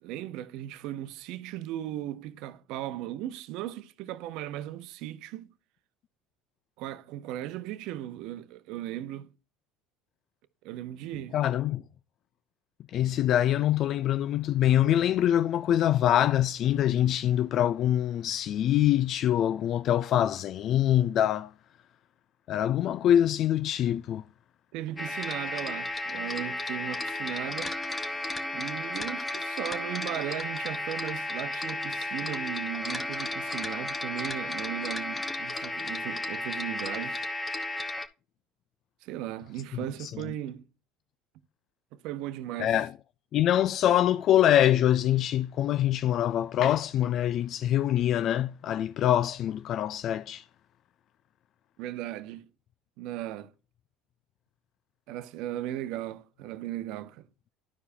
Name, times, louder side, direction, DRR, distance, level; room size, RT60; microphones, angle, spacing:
voice 1, 0.0-5.5 6.8-9.3 10.6-11.4 24.7-27.8 28.5-37.2 39.0-40.7 42.0-42.7 51.8-52.5 53.0-53.5 55.1-57.3, right 13 dB, 70° right, 0.7 m, -37 dB
voice 2, 11.3-11.8 12.9-21.5 22.5-24.2 40.0-40.1 42.6-42.9 43.3-50.5, left 11 dB, 55° left, 0.3 m, -24 dB
sound 1, 25.0-38.1, left 2 dB, 20° left, 1.1 m, -33 dB
12.5 x 4.8 x 2.7 m
supercardioid pair, 85°, 0 cm